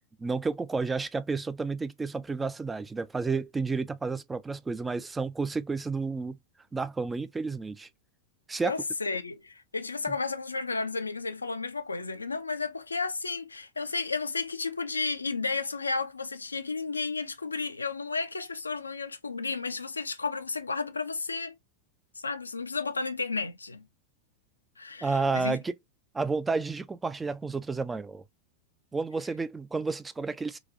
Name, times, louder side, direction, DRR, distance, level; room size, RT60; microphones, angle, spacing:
voice 1, 0.2-6.4 6.7-7.9 8.5-8.8 10.1-10.2 25.0-25.8 26.1-28.2 28.9-30.6, right 4 dB, 10° right, 0.3 m, -31 dB
voice 2, 8.6-21.5 22.2-23.8 24.8-25.6, left 4 dB, 80° left, 0.4 m, -32 dB
3.9 x 2.3 x 2.4 m
figure-of-eight pair, 90°, 0 cm